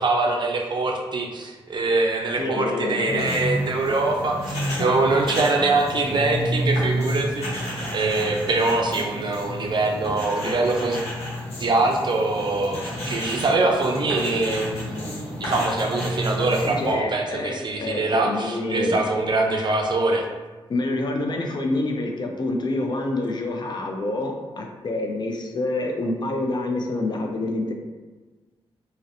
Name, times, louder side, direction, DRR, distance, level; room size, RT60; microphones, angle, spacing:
voice 1, 0.0-11.0 11.6-20.2, right 2 dB, 50° right, 1 dB, 0.4 m, -23 dB
voice 2, 2.4-3.4 4.7-4.9 16.5-19.0 20.7-27.7, left 2 dB, 45° left, 2 dB, 0.4 m, -27 dB
sound 1, 3.0-16.9, equal, 80° left, 0.8 m, -30 dB
2.6 x 2.0 x 2.5 m, 1.3 s
cardioid pair, 55°, 10 cm